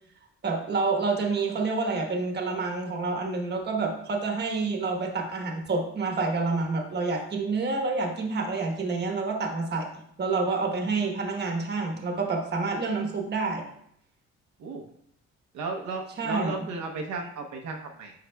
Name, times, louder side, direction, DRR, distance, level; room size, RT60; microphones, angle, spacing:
voice 1, 0.4-9.9 10.2-13.6 16.2-16.7, right 3 dB, 35° right, 2 dB, 1.2 m, -28 dB
voice 2, 15.5-18.1, right 3 dB, 70° right, 2 dB, 0.9 m, -34 dB
9.6 x 5.7 x 2.3 m, 0.71 s
cardioid pair, 160°, 30 cm